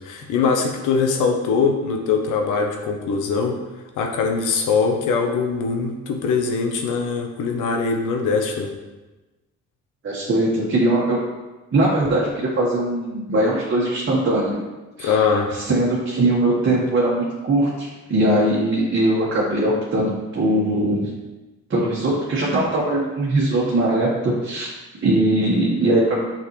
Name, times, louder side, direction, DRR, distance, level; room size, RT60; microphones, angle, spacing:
voice 1, 0.0-3.6 4.0-8.7 15.0-15.5, left 5 dB, 85° left, 3 dB, 1.0 m, -22 dB
voice 2, 10.0-11.2 11.7-14.6 15.0-15.2 15.6-21.1 21.7-24.7 25.0-26.2, right 1 dB, 40° right, -7 dB, 1.6 m, -20 dB
6.6 x 5.6 x 3.2 m, 1.1 s
cardioid pair, 90°, 30 cm